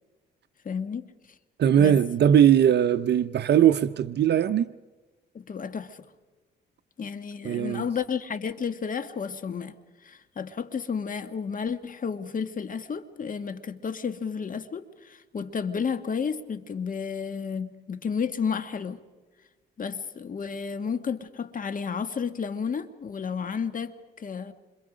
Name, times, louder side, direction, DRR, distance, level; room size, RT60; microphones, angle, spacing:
voice 1, 0.6-1.1 1.8-2.0 5.3-6.0 7.0-9.7 10.0-19.0 19.8-24.5, left 6 dB, 45° left, 1.6 m, -32 dB
voice 2, 1.6-4.7 7.4-7.8, right 9 dB, 60° right, 0.7 m, -20 dB
27.5 x 26.0 x 5.1 m
cardioid pair, 90°, 20 cm